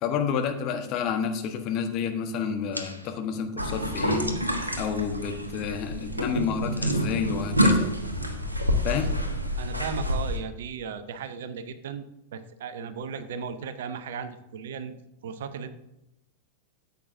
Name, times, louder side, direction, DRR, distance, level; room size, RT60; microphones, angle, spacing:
voice 1, 0.0-4.2 4.8-7.9 8.8-9.1, left 7 dB, 40° left, 5 dB, 1.2 m, -29 dB
sound 1, 2.7-4.7 5.0-5.5 5.7-9.0, left 1 dB, 90° left, 0.8 m, -42 dB
sound 2, 3.6-10.4, equal, 85° right, 1.1 m, -27 dB
voice 2, 9.6-12.0 12.3-14.9 15.2-15.7, right 6 dB, 60° right, 11 dB, 0.7 m, -36 dB
13.0 x 8.0 x 2.6 m, 0.88 s
figure-of-eight pair, 90°, 0 cm